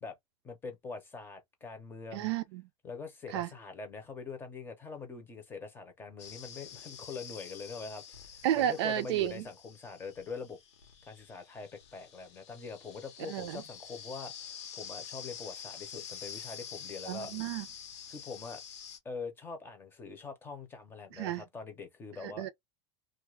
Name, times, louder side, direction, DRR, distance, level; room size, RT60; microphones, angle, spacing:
voice 1, 0.4-2.3 2.8-10.6 11.1-17.3 18.1-18.6 19.0-22.5, left 4 dB, 15° left, 0.7 m, -44 dB
voice 2, 2.1-2.6 3.3-3.5 8.4-9.5 13.2-13.6 17.1-17.7 21.1-21.4 22.2-22.5, right 12 dB, 70° right, 0.5 m, -32 dB
sound 1, 6.2-19.0, left 8 dB, 80° left, 1.1 m, -47 dB
2.5 x 2.2 x 3.1 m
supercardioid pair, 150°, 15 cm